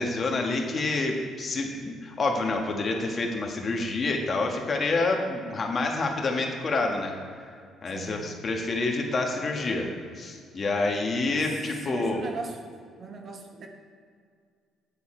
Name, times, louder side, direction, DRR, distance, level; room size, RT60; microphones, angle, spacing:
voice 1, 0.0-7.1 7.8-12.2, left 3 dB, 40° left, 1 dB, 1.4 m, -28 dB
voice 2, 7.9-8.3 11.4-12.6 13.0-13.7, right 4 dB, 50° right, 4 dB, 1.1 m, -39 dB
8.5 x 6.9 x 4.4 m, 2.1 s
cardioid pair, 95°, 0 cm